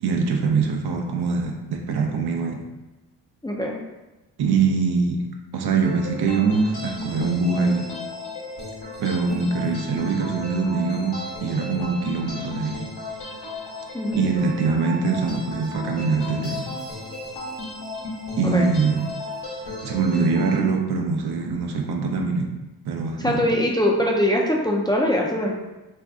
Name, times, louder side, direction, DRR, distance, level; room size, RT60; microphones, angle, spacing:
voice 1, 0.0-2.6 4.4-5.2 5.5-7.9 9.0-12.8 14.1-16.6 18.4-19.1 19.8-22.5 22.8-23.5, right 4 dB, 65° right, 2 dB, 0.6 m, -23 dB
voice 2, 3.4-3.8 13.9-14.2 18.4-18.6 23.2-25.5, left 1 dB, 10° left, -2 dB, 0.5 m, -22 dB
sound 1, 5.8-20.6, left 2 dB, 70° left, 1.0 m, -34 dB
2.6 x 2.2 x 3.5 m, 1.1 s
cardioid pair, 55°, 41 cm